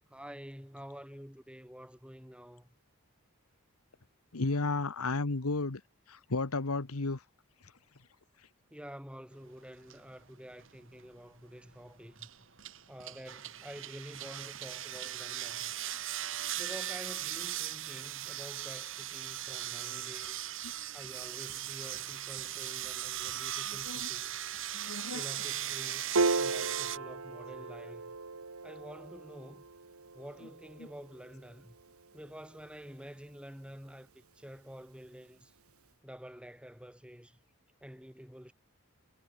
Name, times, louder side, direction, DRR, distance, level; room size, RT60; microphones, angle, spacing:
voice 1, 0.1-2.7 8.7-12.3 12.9-15.7 16.6-20.4 20.9-24.4 25.1-28.2 28.6-29.7 30.1-31.8 32.1-35.5 36.0-37.4 37.8-38.5, equal, 5° right, 7.1 m, -49 dB
voice 2, 4.3-5.8 6.1-7.2 23.9-24.1 24.7-25.2, left 3 dB, 90° left, 1.3 m, -33 dB
sound 1, 9.9-10.0 10.5-10.9 12.2-27.0, right 12 dB, 60° right, 1.8 m, -38 dB
Piano, 26.1-32.8, right 3 dB, 85° right, 1.7 m, -36 dB
head